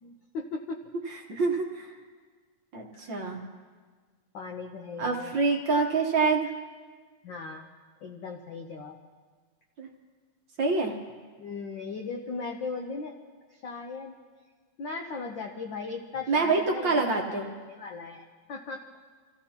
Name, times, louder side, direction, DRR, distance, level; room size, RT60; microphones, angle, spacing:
voice 1, 0.0-0.8 2.9-3.1 4.3-5.3 7.2-7.7 8.0-8.9 11.4-13.1 13.5-14.1 14.8-18.9, left 4 dB, 85° left, 2 dB, 1.0 m, -38 dB
voice 2, 1.1-2.0 2.7-3.4 5.0-6.5 9.8-9.9 10.6-10.9 16.3-17.5, right 4 dB, 50° right, 0 dB, 1.5 m, -26 dB
28.5 x 15.5 x 2.9 m, 1.5 s
omnidirectional pair, 3.3 m